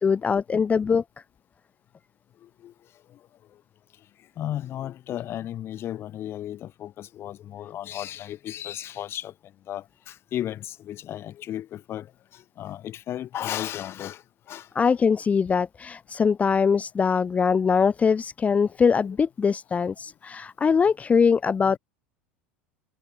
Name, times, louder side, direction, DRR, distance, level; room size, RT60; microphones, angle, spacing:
voice 1, 0.0-1.0 14.8-21.8, left 6 dB, 20° left, 0.7 m, -22 dB
voice 2, 4.4-9.3 9.7-12.1 12.6-14.2 14.5-14.6 19.0-19.1, left 12 dB, 40° left, 3.4 m, -34 dB
hypercardioid pair, 80°, 6 cm